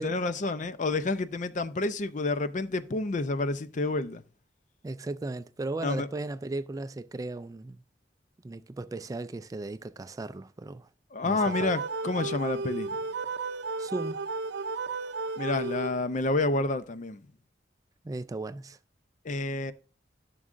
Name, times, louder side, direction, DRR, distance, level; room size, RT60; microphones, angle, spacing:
voice 1, 0.0-4.2 5.8-6.1 11.1-13.0 15.4-17.2 19.2-19.7, left 2 dB, 45° left, 0.5 m, -29 dB
voice 2, 4.8-7.8 8.4-10.9 11.2-11.8 13.8-14.2 18.0-18.8, right 2 dB, 20° right, 0.3 m, -36 dB
sound 1, 11.4-16.3, right 4 dB, 75° right, 0.5 m, -34 dB
11.0 x 6.1 x 2.5 m
head